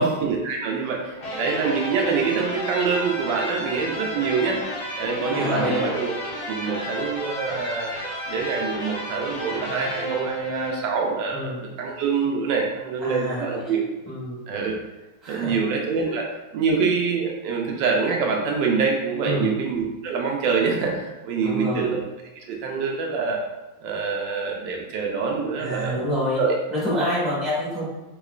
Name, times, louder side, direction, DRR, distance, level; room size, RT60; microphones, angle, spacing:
voice 1, 0.0-4.6 5.0-6.1 6.5-7.9 8.3-13.8 14.5-14.7 15.3-22.0 22.5-23.4 23.8-26.0 26.4-26.5, right 5 dB, 80° right, 0 dB, 1.2 m, -25 dB
sound 1, 1.2-11.1, equal, 75° left, 0.4 m, -32 dB
voice 2, 5.3-5.9 11.3-11.6 13.0-13.7 14.1-14.4 15.2-15.5 19.2-19.5 21.4-21.9 25.6-26.4 26.7-27.9, left 1 dB, ahead, -8 dB, 1.0 m, -27 dB
3.6 x 3.0 x 2.3 m, 1.1 s
omnidirectional pair, 1.9 m